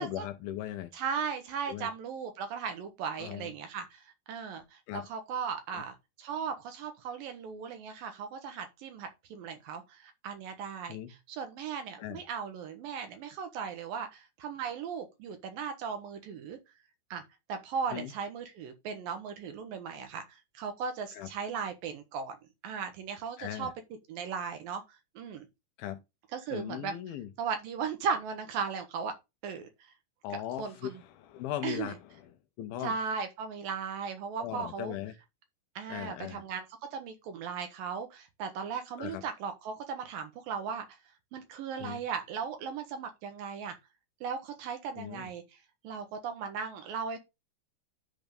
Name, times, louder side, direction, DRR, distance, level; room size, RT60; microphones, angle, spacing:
voice 1, 0.0-0.9 1.7-1.9 3.2-3.5 4.9-5.1 5.7-5.8 10.9-11.1 12.0-12.2 17.9-18.1 21.1-21.3 23.4-23.7 25.8-26.0 26.5-27.3 30.2-32.3 32.6-32.9 34.4-35.1 35.9-36.4 39.0-39.2 41.8-42.0 45.0-45.3, left 12 dB, 80° left, 2.3 m, -38 dB
voice 2, 0.9-16.6 17.1-17.2 17.5-22.4 22.6-23.7 24.1-24.8 25.2-25.5 26.3-26.9 27.4-29.1 29.4-29.9 30.6-31.0 31.6-32.0 32.8-35.0 35.8-36.7 36.9-41.0 41.3-43.8 44.2-47.2, right 6 dB, 70° right, 2.4 m, -37 dB
10.5 x 3.5 x 5.2 m
omnidirectional pair, 4.8 m